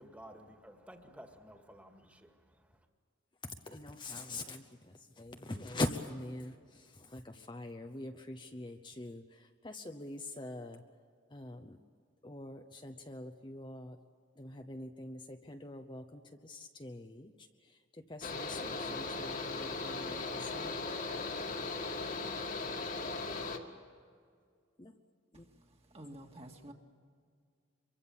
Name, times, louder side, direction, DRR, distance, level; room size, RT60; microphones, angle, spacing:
voice 1, 0.0-2.8, equal, 5° right, 4 dB, 2.1 m, -54 dB
voice 2, 3.7-4.6 5.2-6.5 7.0-9.2 9.6-10.8 11.3-11.8 12.2-14.0 14.4-17.3 18.1-20.8 24.8-24.9 25.3-25.4, left 2 dB, 25° left, 5 dB, 0.9 m, -43 dB
Mechanical fan, 18.2-23.6, left 3 dB, 45° left, 2.0 m, -38 dB
voice 3, 25.3-26.7, right 1 dB, 30° right, 2 dB, 2.2 m, -51 dB
25.5 x 23.5 x 7.4 m, 2.1 s
head